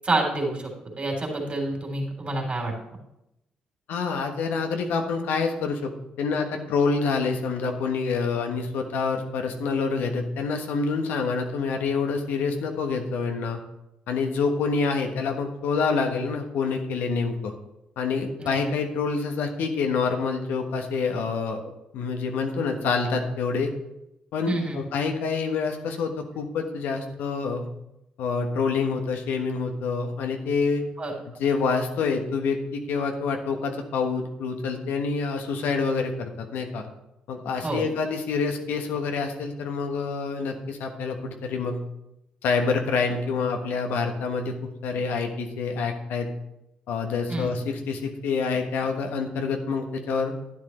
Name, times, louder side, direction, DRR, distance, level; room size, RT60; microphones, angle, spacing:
voice 1, 0.0-0.7 1.0-2.7 18.4-18.6 24.5-24.8 31.0-31.1 37.6-37.8 47.3-47.5, right 2 dB, 35° right, 0 dB, 3.6 m, -27 dB
voice 2, 3.9-5.9 6.2-13.6 14.1-17.5 18.0-23.7 24.3-27.7 28.2-30.8 31.3-36.9 37.3-41.8 42.4-46.3 46.9-50.3, left 4 dB, 75° left, 4 dB, 1.3 m, -27 dB
11.5 x 9.9 x 3.2 m, 0.86 s
hypercardioid pair, 50°, 3 cm